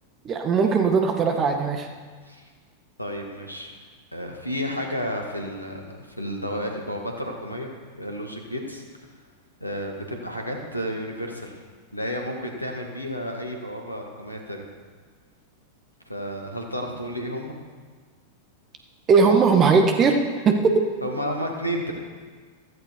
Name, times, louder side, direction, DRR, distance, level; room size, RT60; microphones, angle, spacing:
voice 1, 0.2-1.9 19.1-20.2 20.5-20.8, right 5 dB, 30° right, 5 dB, 1.8 m, -19 dB
voice 2, 3.0-3.7 4.1-8.8 9.6-11.6 11.9-14.6 16.1-17.5 19.2-19.4 21.0-21.9, equal, 90° left, 1 dB, 2.2 m, -32 dB
15.5 x 14.5 x 4.7 m, 1.5 s
figure-of-eight pair, 90°, 0 cm